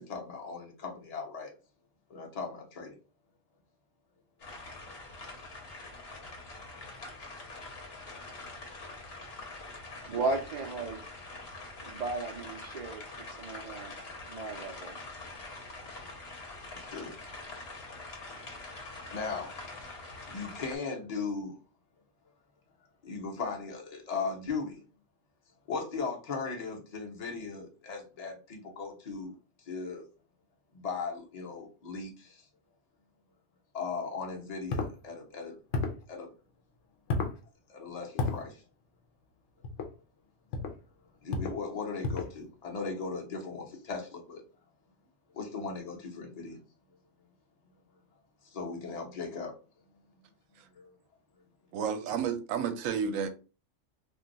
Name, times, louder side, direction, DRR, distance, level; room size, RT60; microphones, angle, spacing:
voice 1, 0.0-1.5 2.1-3.0 16.7-17.1 19.1-19.5 20.3-21.6 23.0-24.8 25.7-29.3 29.6-30.0 30.7-32.5 33.7-35.6 36.1-36.3 37.7-38.6 41.2-44.4 45.3-46.6 48.5-49.5 50.7-50.9, left 4 dB, 35° left, 0.8 m, -38 dB
sound 1, 4.4-20.8, left 2 dB, 55° left, 1.1 m, -45 dB
voice 2, 10.1-11.0 11.8-13.0 13.4-13.9 14.3-15.0, right 3 dB, 55° right, 0.4 m, -35 dB
sound 2, 34.7-34.9 35.7-36.0 37.1-37.4 38.2-38.4 39.6-39.9 40.5-40.8 41.3-41.6 42.0-42.4, left 3 dB, 80° left, 0.9 m, -31 dB
voice 3, 51.7-53.3, right 7 dB, 85° right, 1.0 m, -31 dB
2.6 x 2.2 x 3.9 m
omnidirectional pair, 1.3 m